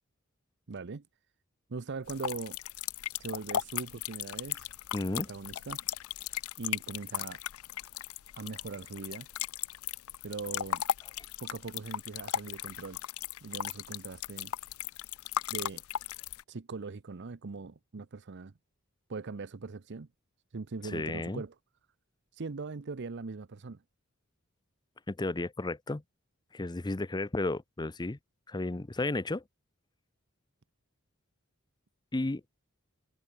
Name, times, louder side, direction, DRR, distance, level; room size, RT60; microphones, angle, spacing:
voice 1, 0.7-1.0 1.7-2.6 3.2-4.7 5.1-5.8 6.6-7.4 8.3-9.3 10.2-10.8 11.4-13.0 13.4-14.5 15.5-15.8 16.5-18.5 19.1-20.1 20.5-21.5 22.3-23.8, right 4 dB, 55° right, 0.7 m, -40 dB
sound 1, 2.1-16.4, left 11 dB, 85° left, 0.5 m, -37 dB
voice 2, 4.9-5.3 11.2-11.3 20.8-21.4 25.1-26.0 26.5-28.2 28.5-29.4 32.1-32.4, left 2 dB, 20° left, 0.7 m, -33 dB
head